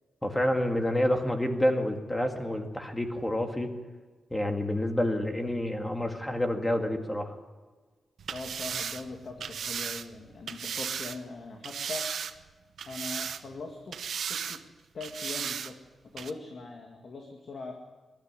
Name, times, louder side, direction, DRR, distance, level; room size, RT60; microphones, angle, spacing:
voice 1, 0.2-3.7 4.3-7.4, left 1 dB, 10° left, 4 dB, 2.0 m, -28 dB
sound 1, 8.2-11.2 11.6-12.5 12.8-13.6 13.9-14.6 15.0-15.7 16.2-16.3, right 7 dB, 65° right, 0.9 m, -35 dB
voice 2, 8.3-12.1 12.9-14.6 14.9-15.8 16.1-17.7, left 3 dB, 45° left, 2 dB, 2.0 m, -41 dB
22.0 x 12.5 x 9.8 m, 1.4 s
wide cardioid pair, 170°, 0 cm